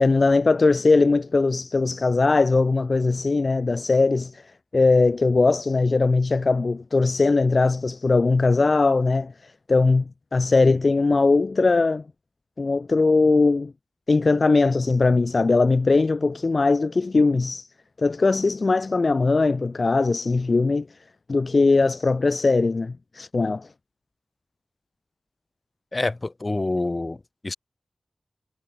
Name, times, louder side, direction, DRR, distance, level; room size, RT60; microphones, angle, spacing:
voice 1, 0.0-4.4 4.7-10.0 10.3-12.0 12.6-13.7 14.1-17.7 18.0-20.9 21.3-23.7, left 3 dB, 60° left, 1.7 m, -20 dB
voice 2, 25.9-27.6, left 2 dB, 40° left, 6.1 m, -27 dB
cardioid pair, 45°, 0 cm